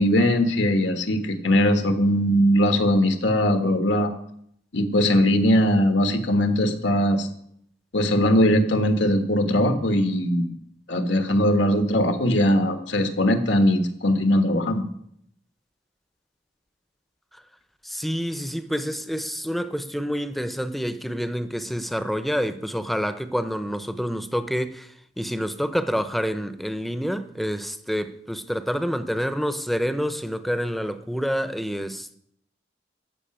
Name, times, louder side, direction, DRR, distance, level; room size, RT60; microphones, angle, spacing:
voice 1, 0.0-4.1 4.7-7.3 7.9-10.5 10.9-14.9, equal, 85° left, 1.5 m, -20 dB
voice 2, 17.8-32.2, equal, ahead, 0.7 m, -28 dB
13.5 x 5.8 x 8.9 m
head